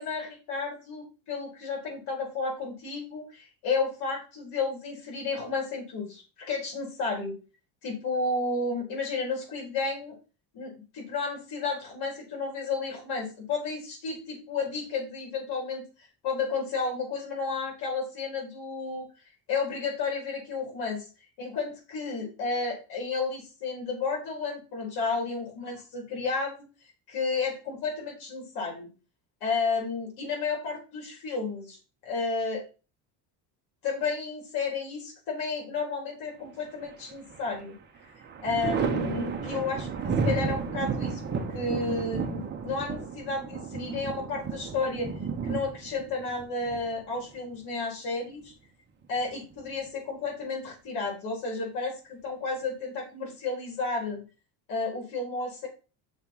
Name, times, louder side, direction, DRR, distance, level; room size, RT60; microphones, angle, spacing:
voice 1, 0.0-7.3 7.8-10.1 10.5-19.1 19.5-21.1 21.4-26.5 27.1-28.9 29.4-31.8 32.0-32.6 33.8-37.7 38.4-45.1 45.4-48.5 49.1-54.2 54.7-55.7, left 4 dB, 65° left, -1 dB, 4.1 m, -32 dB
Thunder, 36.8-37.6 38.0-47.6 49.0-49.9, right 5 dB, 25° right, 1.1 m, -32 dB
6.3 x 4.2 x 5.6 m, 0.34 s
cardioid pair, 155°, 41 cm